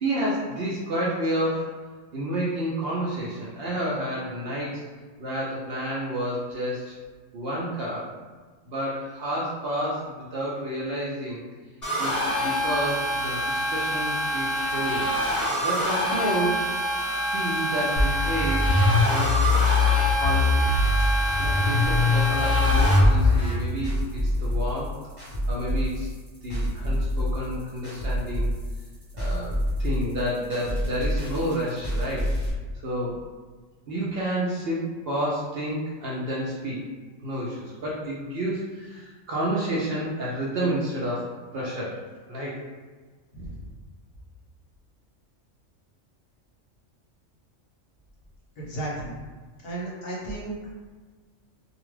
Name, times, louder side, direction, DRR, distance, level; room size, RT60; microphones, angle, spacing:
voice 1, 0.0-1.8 2.1-4.8 5.2-7.0 7.3-8.1 8.7-11.4 12.0-15.1 15.6-16.8 17.3-19.6 20.2-20.7 21.4-25.0 25.5-26.1 26.4-28.5 29.1-32.3 32.8-33.2 33.9-36.9 37.2-42.0 42.3-42.5, right 1 dB, 60° right, -5 dB, 0.7 m, -30 dB
sound 1, 11.8-23.0, equal, 15° left, 1.3 m, -26 dB
sound 2, 18.0-23.5, left 3 dB, 75° left, 0.3 m, -21 dB
sound 3, 21.8-32.5, equal, 30° right, 0.9 m, -28 dB
voice 2, 48.6-49.1 49.6-50.7, right 2 dB, 55° left, -6 dB, 0.9 m, -34 dB
2.4 x 2.3 x 3.1 m, 1.4 s
omnidirectional pair, 1.3 m